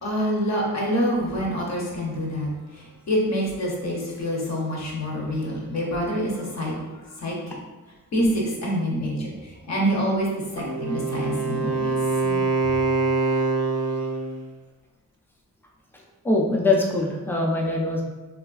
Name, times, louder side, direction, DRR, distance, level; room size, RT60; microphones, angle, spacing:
voice 1, 0.0-6.8 7.2-7.3 8.1-10.3 10.5-12.0, equal, 55° left, -2 dB, 0.7 m, -26 dB
Wind instrument woodwind instrument, 10.6-14.4, right 3 dB, 55° right, 0.4 m, -24 dB
voice 2, 16.2-18.0, left 2 dB, 5° left, -1 dB, 0.4 m, -23 dB
3.2 x 2.4 x 2.3 m, 1.2 s
wide cardioid pair, 125°, 32 cm